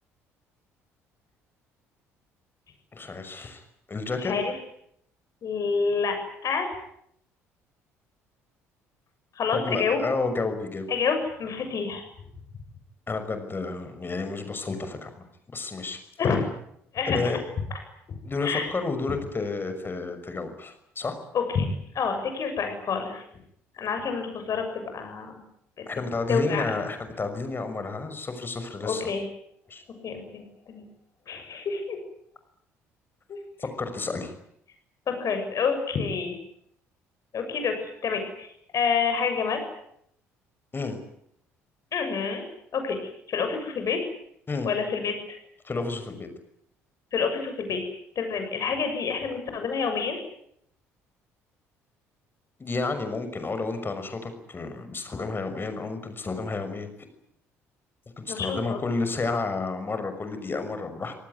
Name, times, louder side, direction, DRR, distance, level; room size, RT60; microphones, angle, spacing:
voice 1, 2.9-3.6 3.9-4.3 9.5-10.9 13.1-15.2 15.5-16.0 17.1-17.4 18.2-21.2 25.9-29.1 29.7-29.8 33.6-34.3 40.7-41.0 44.5-44.7 45.6-46.3 52.6-56.9 58.2-61.1, left 3 dB, 30° left, 8 dB, 6.0 m, -31 dB
voice 2, 4.2-4.5 5.4-6.2 6.4-6.7 9.3-10.0 10.9-12.0 16.2-16.5 16.9-17.4 18.1-18.7 21.3-23.2 23.8-25.4 25.8-25.9 26.3-26.8 28.8-29.2 30.0-30.8 31.3-32.0 33.3-33.4 35.1-36.3 37.3-38.5 38.7-39.6 41.9-42.4 42.7-43.0 43.3-44.0 44.6-45.4 47.1-47.8 48.2-50.2 58.3-58.8, left 5 dB, 45° left, 6 dB, 7.4 m, -28 dB
26.0 x 18.5 x 9.9 m, 0.72 s
figure-of-eight pair, 50°, 8 cm